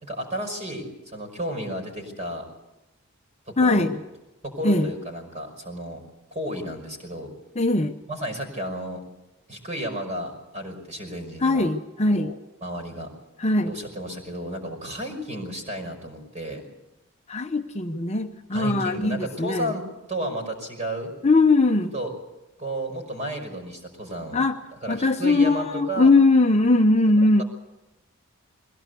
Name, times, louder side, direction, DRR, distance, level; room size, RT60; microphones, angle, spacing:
voice 1, 0.0-2.5 3.5-3.9 4.4-6.0 6.3-7.3 8.1-9.0 9.5-11.7 12.1-12.4 12.6-13.1 13.7-16.6 18.5-21.1 21.9-22.1 22.6-24.4 24.8-26.1, right 1 dB, 35° right, 4 dB, 5.6 m, -32 dB
voice 2, 3.6-4.0 4.6-4.9 7.6-8.0 11.4-12.3 13.4-13.7 17.3-19.8 21.2-21.9 24.3-24.6 24.9-27.4, left 2 dB, 30° left, 6 dB, 0.8 m, -20 dB
22.0 x 17.0 x 8.3 m, 0.95 s
head